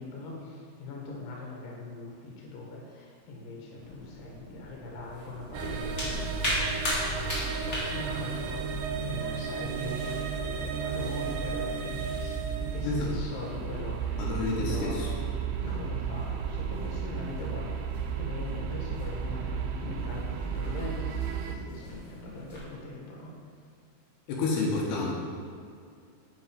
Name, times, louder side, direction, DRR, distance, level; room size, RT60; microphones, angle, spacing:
voice 1, 0.0-8.6 9.0-12.3 12.6-14.2 14.6-15.0 15.6-23.3, left 2 dB, 65° left, -3 dB, 3.0 m, -41 dB
sound 1, 3.7-22.6, equal, 40° left, 1.0 m, -40 dB
sound 2, 5.5-21.6, right 6 dB, 80° right, 2.5 m, -33 dB
voice 2, 14.2-15.1 24.3-25.1, left 3 dB, 80° left, -3 dB, 3.2 m, -29 dB
9.0 x 5.8 x 5.1 m, 2.2 s
omnidirectional pair, 4.7 m